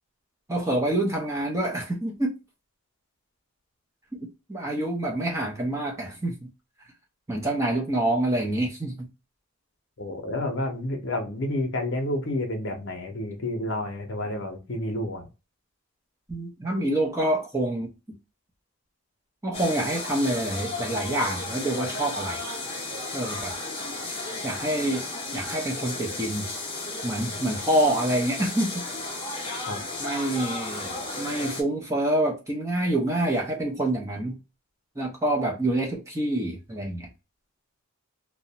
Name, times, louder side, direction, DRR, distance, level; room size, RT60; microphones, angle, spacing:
voice 1, 0.5-2.3 4.5-6.5 7.3-9.1 16.3-17.9 19.4-22.4 23.1-23.5 24.4-25.0 25.3-26.5 27.0-28.8 30.0-34.4 35.0-37.1, right 1 dB, 15° right, 0.6 m, -27 dB
voice 2, 10.0-15.3 29.7-29.8, left 1 dB, 55° left, 0.7 m, -30 dB
sound 1, 19.5-31.6, left 2 dB, 25° left, 0.8 m, -34 dB
2.5 x 2.1 x 2.8 m
head